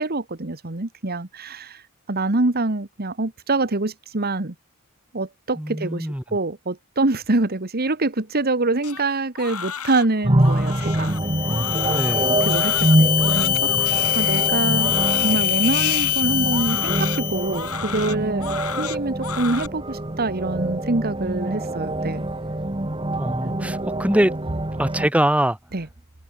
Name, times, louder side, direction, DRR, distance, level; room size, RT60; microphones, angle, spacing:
voice 1, 0.0-4.5 5.1-11.2 11.8-12.0 12.4-14.9 15.2-22.2 23.4-23.7 25.7-25.9, right 2 dB, 45° right, 1.5 m, -25 dB
voice 2, 5.6-6.2 11.9-12.3 23.2-24.3 24.8-25.6, right 1 dB, 5° right, 1.5 m, -22 dB
Crying sobbing, 8.8-19.7, left 8 dB, 85° left, 2.7 m, -33 dB
sound 1, 10.2-25.1, right 1 dB, 25° right, 1.6 m, -25 dB
sound 2, 11.1-17.7, left 11 dB, 45° left, 1.0 m, -23 dB
head